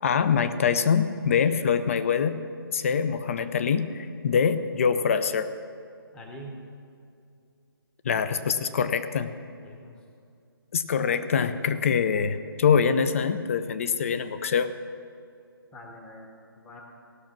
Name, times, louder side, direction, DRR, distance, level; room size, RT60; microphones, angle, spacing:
voice 1, 0.0-2.4 2.7-5.5 8.0-9.3 10.7-14.7, left 6 dB, 35° left, 12 dB, 0.6 m, -24 dB
voice 2, 6.1-6.6 9.6-9.9 15.7-16.3 16.6-16.8, equal, 5° left, 0 dB, 1.0 m, -43 dB
17.5 x 6.1 x 6.0 m, 2.4 s
figure-of-eight pair, 160°, 13 cm